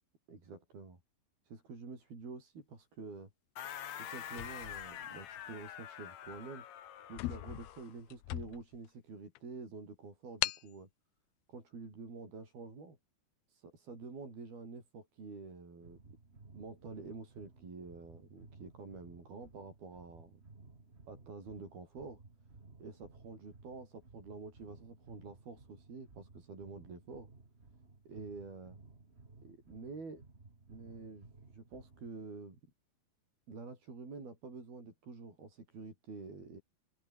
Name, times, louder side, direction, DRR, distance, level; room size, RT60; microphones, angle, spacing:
voice 1, 0.3-1.0 1.5-3.3 4.0-6.6 7.1-10.9 11.5-13.0 13.5-16.2 16.5-20.4 21.1-22.2 22.8-27.3 28.1-28.8 29.4-30.2 30.7-32.6 33.5-36.6, right 4 dB, 70° right, 9.6 m, -48 dB
sound 1, 3.6-8.0, left 10 dB, 55° left, 2.4 m, -46 dB
sound 2, 4.3-5.6 6.3-6.5 6.8-6.9 7.1-8.9 9.4-9.5 10.4-10.7, left 18 dB, 85° left, 2.7 m, -39 dB
sound 3, 15.8-32.2, right 3 dB, 20° right, 2.3 m, -58 dB
open air
omnidirectional pair, 4.5 m